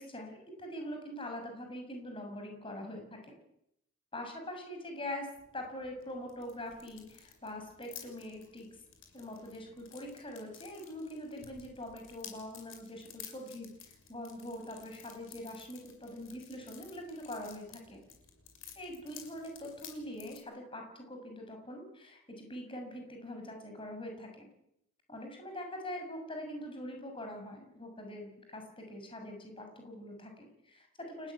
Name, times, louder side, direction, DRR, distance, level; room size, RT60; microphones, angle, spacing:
voice 1, 0.0-3.4 4.1-5.3 5.5-8.7 9.1-18.0 18.8-24.5 25.1-31.3, left 1 dB, 25° left, 4 dB, 6.4 m, -43 dB
sound 1, 5.3-20.4, left 8 dB, 75° left, 6.4 m, -54 dB
30.0 x 16.0 x 9.8 m, 0.77 s
head